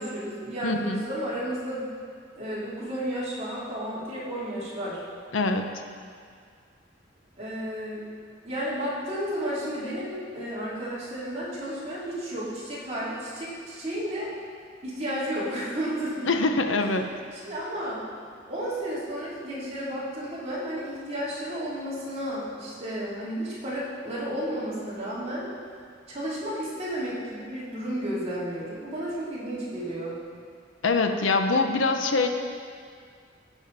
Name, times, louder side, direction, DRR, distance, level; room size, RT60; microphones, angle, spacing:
voice 1, 0.0-1.9 2.4-5.0 7.4-8.0 8.4-14.3 14.8-16.3 17.3-18.0 18.5-25.5 26.1-30.2, equal, 35° right, -9 dB, 3.1 m, -32 dB
voice 2, 0.6-1.0 5.3-5.8 16.3-17.2 30.8-32.3, left 3 dB, 90° left, 6 dB, 0.8 m, -24 dB
15.5 x 7.1 x 4.1 m, 2.1 s
head